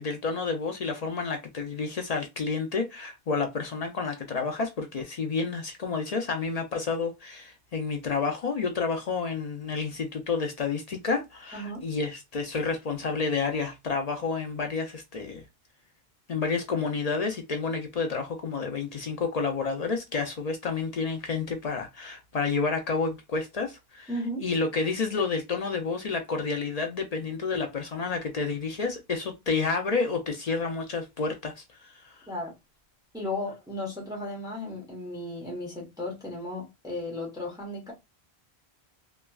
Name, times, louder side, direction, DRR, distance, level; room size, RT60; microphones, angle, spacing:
voice 1, 0.0-15.4 16.3-24.1 24.4-32.2, left 4 dB, 55° left, 0.4 m, -30 dB
voice 2, 11.5-11.8 24.1-24.5 32.3-32.5 33.1-37.9, left 1 dB, 5° right, 0.8 m, -35 dB
2.9 x 2.3 x 2.3 m
omnidirectional pair, 1.1 m